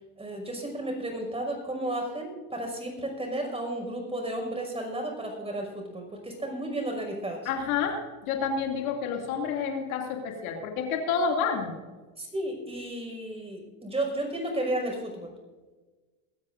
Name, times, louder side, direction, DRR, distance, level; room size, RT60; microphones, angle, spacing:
voice 1, 0.2-7.5 12.2-15.3, right 1 dB, 15° right, 2 dB, 5.7 m, -33 dB
voice 2, 7.4-11.7, left 6 dB, 90° left, 1 dB, 2.8 m, -29 dB
22.5 x 13.5 x 2.6 m, 1.3 s
supercardioid pair, 100°, 41 cm